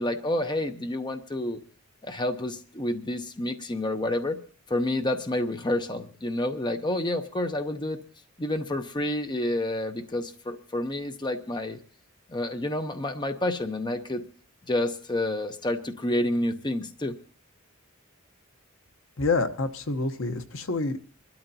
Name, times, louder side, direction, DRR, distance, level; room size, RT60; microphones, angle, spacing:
voice 1, 0.0-1.6 2.0-4.4 4.7-8.0 8.4-11.8 12.3-14.2 14.7-17.2, left 1 dB, 20° left, 7 dB, 0.7 m, -29 dB
voice 2, 19.2-21.0, left 3 dB, 65° left, 8 dB, 1.0 m, -27 dB
24.0 x 12.5 x 2.7 m, 0.39 s
head